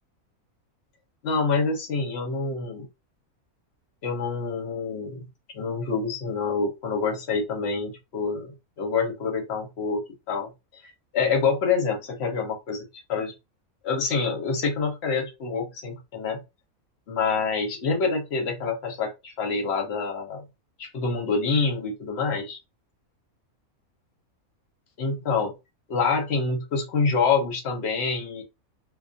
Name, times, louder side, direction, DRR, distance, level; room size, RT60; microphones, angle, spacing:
voice 1, 1.2-2.9 4.0-5.2 5.5-8.5 8.8-10.0 10.3-10.5 10.8-12.8 13.1-13.3 13.8-16.4 17.1-20.4 20.8-22.6 25.0-25.5 25.9-28.4, left 4 dB, 60° left, 3 dB, 0.8 m, -26 dB
2.3 x 2.2 x 2.5 m, 0.24 s
omnidirectional pair, 1.5 m